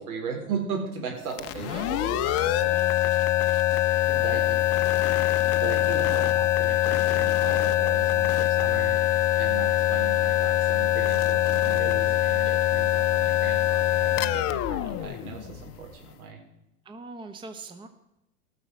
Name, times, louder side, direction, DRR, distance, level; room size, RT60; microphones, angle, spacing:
voice 1, 0.0-2.1 4.1-4.6 5.1-5.2 5.5-16.4, right 5 dB, 75° right, 1 dB, 4.3 m, -37 dB
sound 1, 1.3-15.9, left 14 dB, 35° left, 0.7 m, -23 dB
voice 2, 1.7-2.9 4.0-4.4 16.8-17.9, right 3 dB, 10° right, 8 dB, 0.9 m, -41 dB
18.0 x 6.7 x 6.3 m, 0.91 s
hypercardioid pair, 105°, 44 cm